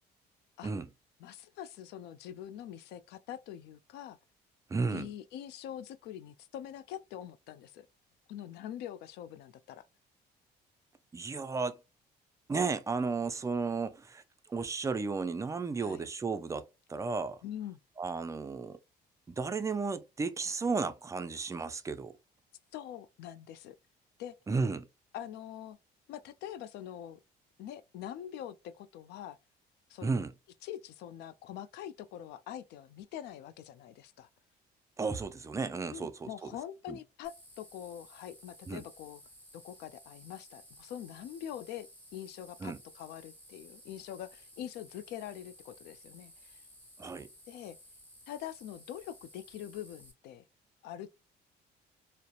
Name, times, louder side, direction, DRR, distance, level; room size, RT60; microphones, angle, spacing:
voice 1, 1.2-4.2 4.9-7.9 8.3-9.9 15.8-16.1 17.4-17.8 22.7-23.8 24.2-24.4 25.1-25.8 26.1-27.2 27.6-29.4 29.9-30.2 30.6-34.3 35.9-39.2 39.5-46.6 47.5-47.8 48.3-50.4 50.8-51.1, left 11 dB, 80° left, 0.4 m, -44 dB
voice 2, 4.7-5.1 11.1-11.8 12.5-14.2 14.5-16.6 16.9-17.4 18.0-18.8 19.3-22.1 24.5-24.9 30.0-30.3 35.0-36.5 36.9-37.0 38.7-38.8 42.6-42.8 47.0-47.3, right 4 dB, 20° right, 0.3 m, -33 dB
sound 1, 37.2-50.1, equal, 10° left, 0.9 m, -56 dB
2.7 x 2.0 x 2.3 m
cardioid pair, 110°, 17 cm